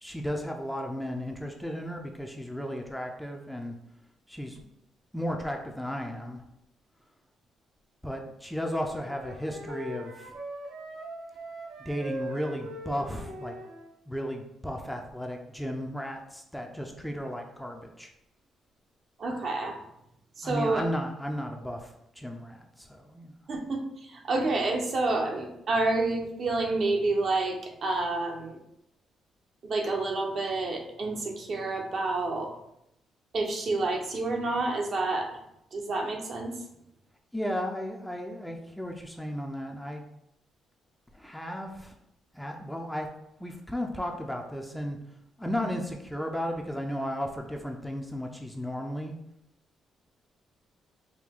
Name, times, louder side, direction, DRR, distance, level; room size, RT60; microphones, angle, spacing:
voice 1, 0.0-3.7 4.3-4.7 5.1-6.4 8.0-10.3 11.8-13.5 14.1-18.1 20.4-23.3 37.3-40.0 41.1-41.9 42.3-43.1 43.4-45.0 45.4-49.1, equal, 5° left, 2 dB, 0.5 m, -34 dB
Wind instrument woodwind instrument, 8.7-13.9, right 1 dB, 80° right, 1.0 m, -41 dB
voice 2, 19.2-19.8 20.4-20.9 23.5-28.6 29.6-32.5 33.3-35.3 35.7-36.5, right 2 dB, 55° right, 2 dB, 0.9 m, -29 dB
4.9 x 2.2 x 3.6 m, 0.80 s
cardioid pair, 90°, 0 cm